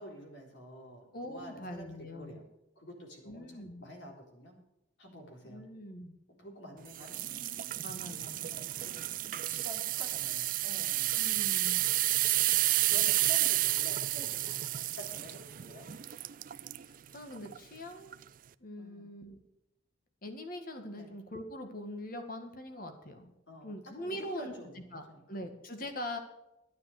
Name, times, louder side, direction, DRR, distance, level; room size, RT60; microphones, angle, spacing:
voice 1, 0.0-2.4 2.8-4.5 5.0-5.6 6.4-7.4 7.9-8.2 8.5-9.0 9.5-11.2 12.8-15.9 18.8-19.1 20.9-21.2 23.5-23.7 24.0-25.2, equal, 65° left, 1 dB, 3.9 m, -49 dB
voice 2, 1.1-2.4 3.2-3.9 5.4-6.1 7.8-8.5 11.1-11.8 16.9-18.2 18.6-19.4 20.2-23.3 23.6-24.5 24.9-26.2, left 1 dB, 45° left, 6 dB, 1.8 m, -43 dB
sound 1, 6.9-16.8 17.4-17.6 18.1-18.2, right 16 dB, 45° right, 0.4 m, -31 dB
11.5 x 9.5 x 6.5 m, 0.90 s
head